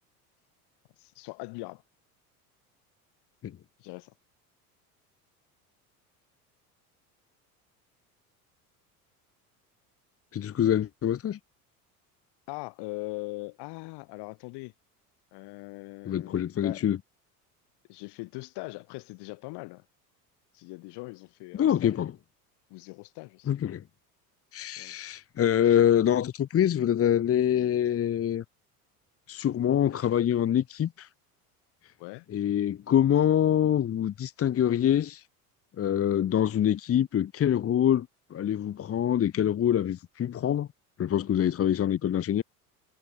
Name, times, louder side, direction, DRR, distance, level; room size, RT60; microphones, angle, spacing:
voice 1, 1.0-1.8 3.8-4.1 12.5-14.7 15.3-16.8 17.9-19.9 20.5-22.0 22.7-23.7 24.8-25.0 32.0-32.3, left 24 dB, 60° left, 7.0 m, -41 dB
voice 2, 10.3-11.4 16.0-17.0 21.5-22.1 23.5-23.8 24.5-28.4 29.3-31.1 32.3-35.2 35.8-40.7 41.0-42.4, left 10 dB, 30° left, 1.1 m, -25 dB
hypercardioid pair, 75°, 45 cm